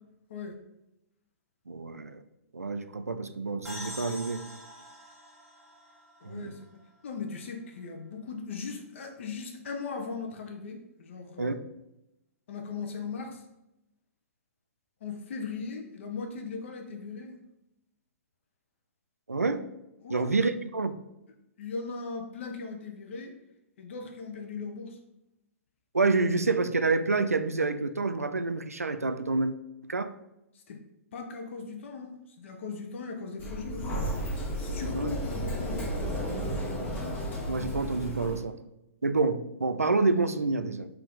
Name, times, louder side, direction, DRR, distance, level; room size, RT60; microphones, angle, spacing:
voice 1, 1.7-2.2 2.5-4.4 6.2-6.6 11.4-11.6 19.3-19.6 20.1-20.9 25.9-29.5 29.8-30.1 34.9-35.2 37.5-38.6 39.0-40.9, right 3 dB, 90° right, 11 dB, 0.3 m, -28 dB
sound 1, 3.6-7.2, left 1 dB, 5° right, 0.9 m, -45 dB
voice 2, 6.2-11.6 12.5-13.4 15.0-17.4 20.0-20.3 21.6-23.3 23.8-25.0 30.7-30.8 31.1-34.0 34.6-35.8, left 4 dB, 55° left, 3 dB, 0.7 m, -38 dB
Sliding door, 33.4-38.4, equal, 25° left, 1.2 m, -33 dB
4.1 x 2.7 x 3.8 m, 0.87 s
figure-of-eight pair, 120°, 8 cm